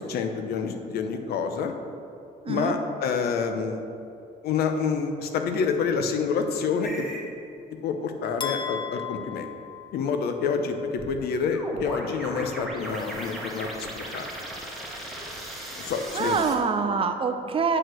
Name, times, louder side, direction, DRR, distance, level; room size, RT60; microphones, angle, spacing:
voice 1, 0.0-1.7 2.5-3.8 4.4-7.1 7.8-9.5 9.9-14.3 15.8-16.4, left 5 dB, 70° left, 6 dB, 0.8 m, -28 dB
voice 2, 2.4-2.7 16.1-17.8, right 5 dB, 35° right, 6 dB, 0.6 m, -25 dB
sound 1, 6.8-7.3 11.0-16.6, right 1 dB, ahead, 1.6 m, -37 dB
sound 2, 8.4-10.5, left 7 dB, 25° left, 0.7 m, -35 dB
8.6 x 4.7 x 6.2 m, 2.6 s
cardioid pair, 110°, 17 cm